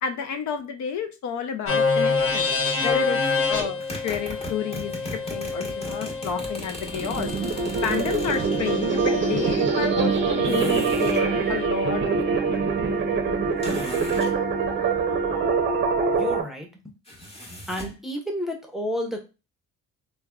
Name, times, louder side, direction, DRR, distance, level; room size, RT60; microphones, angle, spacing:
voice 1, 0.0-2.5 2.8-3.2 3.5-7.3 7.8-12.7, left 7 dB, 70° left, 6 dB, 0.5 m, -30 dB
sound 1, 1.7-9.5, left 4 dB, 50° left, 1.0 m, -27 dB
sound 2, 3.6-8.6 10.5-11.3 13.6-14.4 17.1-18.0, left 1 dB, 20° left, 1.0 m, -36 dB
sound 3, 6.8-16.4, right 5 dB, 40° right, 0.6 m, -24 dB
voice 2, 16.2-16.9 17.7-19.2, equal, ahead, 2 dB, 0.7 m, -30 dB
3.3 x 2.2 x 2.3 m, 0.29 s
cardioid pair, 90°, 30 cm